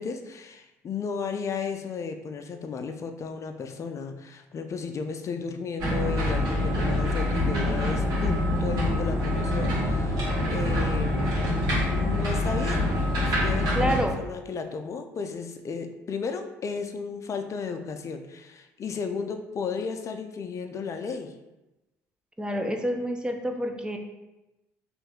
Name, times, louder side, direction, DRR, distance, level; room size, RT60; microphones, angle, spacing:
voice 1, 0.0-11.4 11.9-12.9 13.2-21.3, left 5 dB, 45° left, 6 dB, 0.5 m, -34 dB
sound 1, 5.8-14.0, left 1 dB, 65° right, 1.4 m, -25 dB
voice 2, 13.8-14.1 22.4-24.0, equal, 10° right, 3 dB, 0.6 m, -28 dB
3.1 x 2.5 x 3.6 m, 0.99 s
hypercardioid pair, 60°, 7 cm